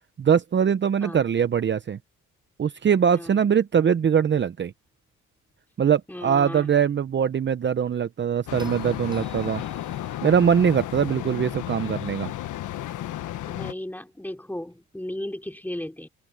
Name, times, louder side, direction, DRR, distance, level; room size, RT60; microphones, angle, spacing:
voice 1, 0.2-2.0 2.6-4.7 5.8-9.6 10.2-12.3, right 7 dB, 40° right, 0.8 m, -22 dB
voice 2, 3.1-3.4 6.1-6.7 13.5-16.1, left 1 dB, 5° left, 4.2 m, -35 dB
sound 1, 8.5-13.7, left 13 dB, 80° left, 1.5 m, -33 dB
sound 2, 8.6-12.9 15.1-15.2, right 2 dB, 15° right, 5.9 m, -49 dB
open air
cardioid pair, 90°, 30 cm